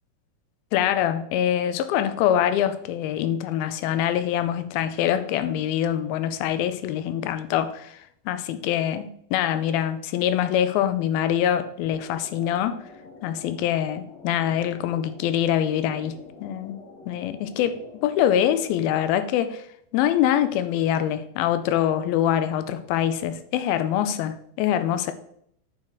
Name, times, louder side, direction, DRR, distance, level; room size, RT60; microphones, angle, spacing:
voice 1, 0.7-8.0 8.3-12.8 13.2-16.8 17.1-19.6 19.9-25.1, left 10 dB, 85° left, 2.5 m, -24 dB
sound 1, 11.8-19.0, left 4 dB, 65° left, 1.7 m, -46 dB
9.0 x 5.8 x 4.5 m
omnidirectional pair, 4.3 m